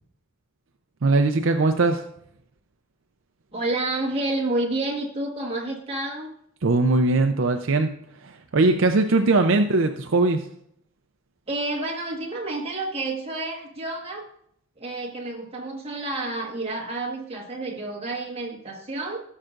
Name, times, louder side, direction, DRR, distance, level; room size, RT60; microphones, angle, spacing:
voice 1, 1.0-2.0 6.6-7.9 8.2-10.4, right 3 dB, 65° right, 6 dB, 0.6 m, -20 dB
voice 2, 3.5-6.3 9.1-9.4 11.5-14.2 14.8-19.2, right 2 dB, 30° right, -1 dB, 1.5 m, -29 dB
16.0 x 6.5 x 2.5 m, 0.70 s
head